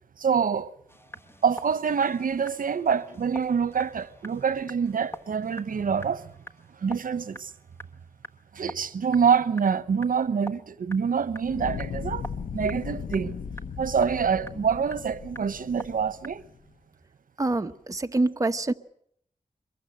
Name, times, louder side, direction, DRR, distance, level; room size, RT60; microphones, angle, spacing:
voice 1, 0.2-0.7 1.4-6.3 6.8-7.5 8.5-12.3 12.5-13.3 13.8-16.4, right 6 dB, 80° right, 0.9 m, -26 dB
sound 1, 0.9-9.2 9.6-9.7 10.0-10.6 10.9-16.6, equal, 15° left, 1.4 m, -44 dB
Fire, 11.4-16.6, left 6 dB, 80° left, 1.0 m, -37 dB
voice 2, 17.4-18.7, right 2 dB, 25° right, 1.0 m, -26 dB
23.5 x 21.5 x 7.8 m
wide cardioid pair, 115°, 14 cm